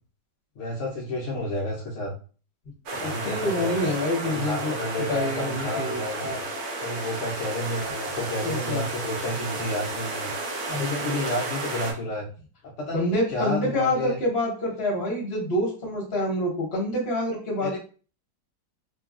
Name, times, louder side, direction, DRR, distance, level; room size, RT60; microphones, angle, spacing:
voice 1, 0.6-2.1 3.0-3.9 4.2-6.4 6.8-10.3 10.7-12.3 12.6-14.2 17.6-17.8, left 1 dB, 70° left, -2 dB, 0.7 m, -30 dB
voice 2, 2.9-4.7 5.1-6.4 8.4-8.8 10.7-11.3 12.9-17.8, left 1 dB, 40° left, -2 dB, 1.0 m, -27 dB
sound 1, 2.9-11.9, right 2 dB, 65° right, 1.0 m, -32 dB
3.2 x 2.2 x 2.4 m, 0.38 s
omnidirectional pair, 1.9 m